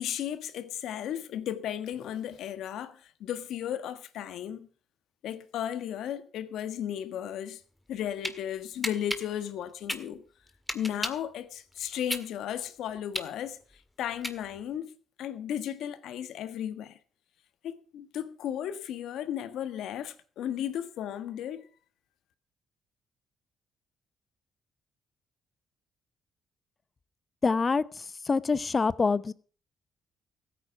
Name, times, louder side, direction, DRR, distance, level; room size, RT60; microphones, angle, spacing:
voice 1, 0.0-4.7 5.2-7.6 7.9-10.2 10.7-17.0 17.6-21.7, left 10 dB, 80° left, 1.5 m, -35 dB
sound 1, 7.8-8.4 8.8-11.3 11.7-14.8, left 1 dB, 5° left, 1.9 m, -35 dB
voice 2, 27.4-27.8 28.3-29.3, left 4 dB, 30° left, 0.8 m, -25 dB
15.5 x 9.2 x 5.8 m
cardioid pair, 90°, 0 cm